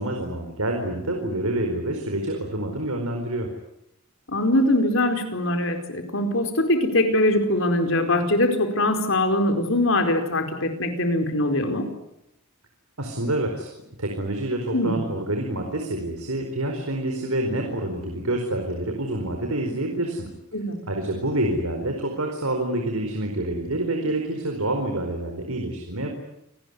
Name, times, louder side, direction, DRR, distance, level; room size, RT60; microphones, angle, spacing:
voice 1, 0.0-3.5 13.0-13.7 14.0-20.3 20.9-26.2, right 1 dB, 85° right, 3 dB, 4.6 m, -27 dB
voice 2, 4.3-11.9 14.7-15.0 20.5-20.8, left 1 dB, 60° left, 6 dB, 4.6 m, -22 dB
28.5 x 19.5 x 9.8 m, 0.86 s
head